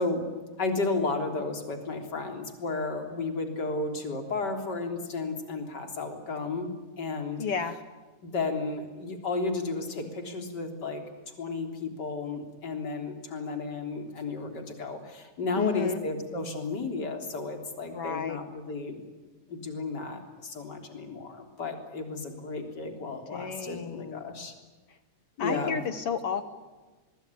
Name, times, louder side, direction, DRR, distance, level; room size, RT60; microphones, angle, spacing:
voice 1, 0.0-6.7 7.0-7.4 8.2-11.0 11.4-19.0 19.5-24.5 25.4-25.8, left 3 dB, 30° left, 5 dB, 3.9 m, -33 dB
voice 2, 7.4-7.8 15.6-16.0 17.9-18.4 23.3-24.2 25.4-26.4, left 6 dB, 60° left, 11 dB, 1.7 m, -31 dB
25.0 x 22.0 x 10.0 m, 1.3 s
omnidirectional pair, 3.7 m